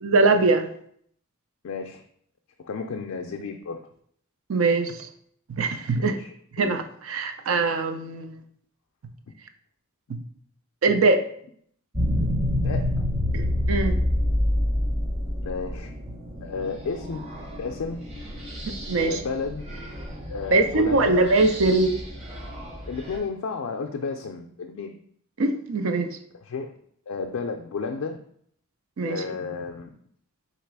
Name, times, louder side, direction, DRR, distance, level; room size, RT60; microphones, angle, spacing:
voice 1, 0.0-0.7 4.5-5.0 5.6-6.2 6.6-8.4 10.8-11.2 13.3-14.0 18.7-19.2 20.5-22.0 25.4-26.2 29.0-29.2, right 3 dB, 70° right, 8 dB, 0.5 m, -22 dB
voice 2, 1.6-2.0 2.6-3.8 6.0-6.3 6.6-6.8 12.6-13.1 15.4-15.9 16.4-18.1 19.0-19.6 20.3-21.2 22.9-25.0 26.4-26.8 27.1-28.2 29.0-30.0, left 4 dB, 75° left, 3 dB, 0.4 m, -32 dB
sound 1, 11.9-23.2, left 1 dB, 30° right, 0.9 m, -28 dB
3.9 x 2.9 x 4.6 m, 0.66 s
head